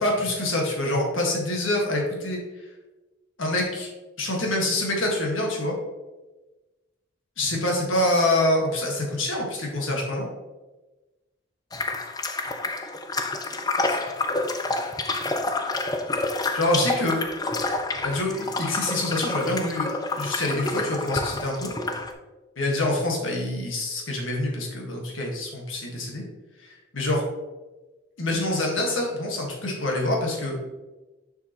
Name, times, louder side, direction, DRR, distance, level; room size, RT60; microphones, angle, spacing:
voice 1, 0.0-2.4 3.4-3.9 4.2-5.7 7.4-10.3 13.9-14.0 16.5-17.2 18.0-21.7 22.6-26.2 26.6-27.2 28.2-30.5, left 1 dB, 80° left, -1 dB, 1.7 m, -26 dB
sound 1, 11.7-22.1, left 2 dB, 20° left, 0.4 m, -28 dB
6.9 x 5.7 x 3.0 m, 1.1 s
head